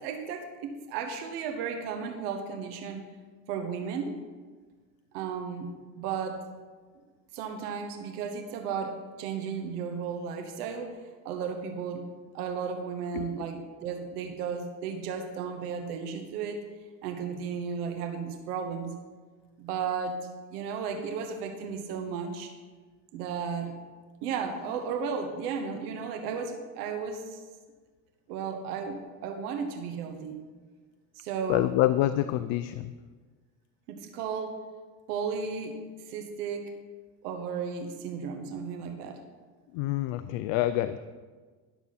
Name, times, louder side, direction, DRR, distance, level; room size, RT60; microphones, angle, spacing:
voice 1, 0.0-3.0 3.5-4.2 5.1-5.7 5.9-6.4 7.3-12.1 12.3-16.6 17.0-19.0 19.6-22.5 23.1-23.8 24.2-27.4 28.3-30.4 31.2-31.7 33.9-34.6 35.1-35.8 36.1-36.7 37.2-39.2, right 6 dB, 85° right, 6 dB, 1.2 m, -34 dB
voice 2, 31.5-32.9 39.7-41.0, left 14 dB, 65° left, 12 dB, 0.5 m, -26 dB
12.0 x 7.0 x 4.1 m, 1.4 s
supercardioid pair, 90°, 45 cm